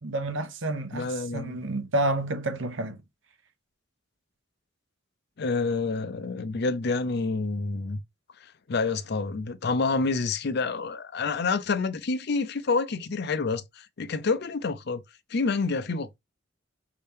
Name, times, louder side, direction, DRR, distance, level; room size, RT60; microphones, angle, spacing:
voice 1, 0.0-3.0, right 2 dB, 70° right, 0.9 m, -29 dB
voice 2, 0.9-1.6 5.4-8.0 8.7-15.0 15.3-16.2, left 4 dB, 55° left, 0.5 m, -28 dB
5.4 x 2.9 x 3.4 m
head